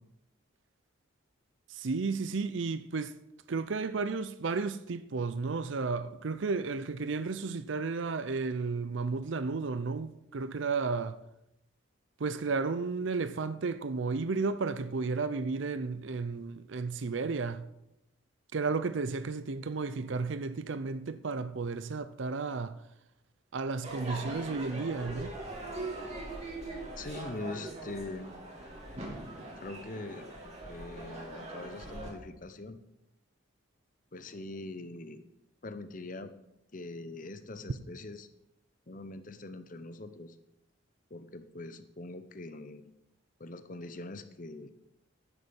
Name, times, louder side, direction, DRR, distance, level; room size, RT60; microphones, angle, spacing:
voice 1, 1.7-3.2 3.5-11.2 12.2-17.7 18.5-22.8 23.5-25.3, right 4 dB, 70° right, 0.5 m, -33 dB
Crowd / Fireworks, 23.8-32.1, right 2 dB, 35° right, 2.8 m, -41 dB
voice 2, 27.0-28.3 29.6-30.3 30.7-32.8 34.1-35.2 35.6-36.3 36.7-38.3 38.9-40.4 41.1-42.9 43.4-44.7, left 2 dB, 40° left, 0.8 m, -42 dB
10.5 x 6.7 x 7.1 m
head